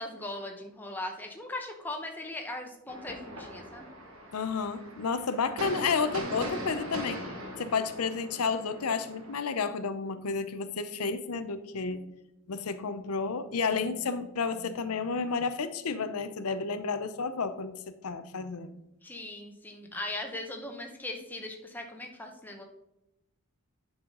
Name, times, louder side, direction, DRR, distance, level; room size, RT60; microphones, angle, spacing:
voice 1, 0.0-3.9 19.0-22.6, left 1 dB, 10° left, 2 dB, 0.9 m, -39 dB
sound 1, 2.9-9.4, equal, 75° right, 1.5 m, -40 dB
voice 2, 4.3-7.2 7.6-12.0 12.5-17.7 18.0-18.7, left 5 dB, 90° left, 11 dB, 0.6 m, -31 dB
9.5 x 5.7 x 3.8 m, 0.90 s
head